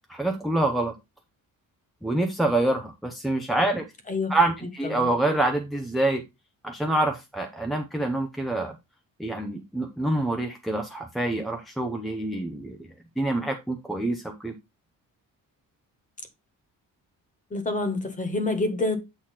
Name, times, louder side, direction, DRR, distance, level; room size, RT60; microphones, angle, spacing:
voice 1, 0.1-0.9 2.0-3.8 4.3-6.2 6.6-8.7 9.2-12.9 13.2-14.5, right 2 dB, ahead, 0.6 m, -26 dB
voice 2, 17.5-19.0, left 2 dB, 20° left, 1.5 m, -27 dB
8.6 x 3.1 x 5.6 m
wide cardioid pair, 175°, 34 cm